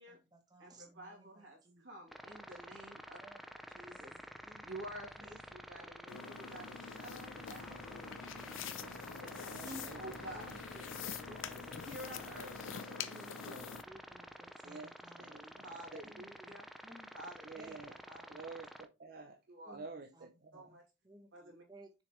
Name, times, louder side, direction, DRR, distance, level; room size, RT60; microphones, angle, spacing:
voice 1, 0.0-1.8 3.2-3.4 3.7-4.7 5.2-5.4 5.8-5.9 7.9-9.9 10.4-11.8 12.2-12.5 13.1-15.2 16.0-17.1 17.6-17.8 18.3-18.4 19.7-19.8 20.1-20.3 20.7-20.8 21.0-21.9, right 1 dB, 20° right, 1.0 m, -59 dB
voice 2, 0.6-3.2 3.7-4.1 4.6-8.6 9.2-10.6 11.0-13.2 15.2-16.7 17.1-17.4 17.9-18.3 19.5-19.8 20.5-20.8 21.3-21.6, right 1 dB, 75° right, 2.7 m, -50 dB
sound 1, 2.1-18.9, equal, ahead, 0.4 m, -50 dB
sound 2, 6.1-13.8, left 7 dB, 80° left, 0.6 m, -46 dB
voice 3, 9.3-10.0 13.5-13.7 14.6-14.9 15.2-15.6 15.9-16.0 17.5-17.9 18.3-19.4 19.7-20.7, right 4 dB, 50° right, 0.7 m, -50 dB
6.7 x 4.8 x 3.1 m
head